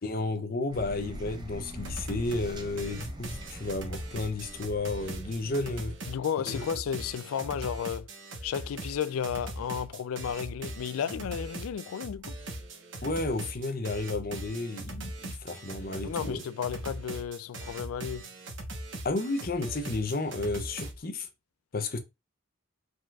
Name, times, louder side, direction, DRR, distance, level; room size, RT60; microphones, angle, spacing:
voice 1, 0.0-5.9 6.5-6.6 13.0-16.4 19.0-21.3 21.7-22.0, left 2 dB, 45° left, 0.6 m, -32 dB
sound 1, 0.7-6.0, equal, 20° right, 0.7 m, -43 dB
sound 2, 1.9-2.5 2.8-20.9, right 1 dB, 60° right, 1.2 m, -40 dB
voice 2, 6.1-8.1 8.4-12.3 16.0-18.3, left 8 dB, 85° left, 0.3 m, -33 dB
4.9 x 3.9 x 2.4 m
head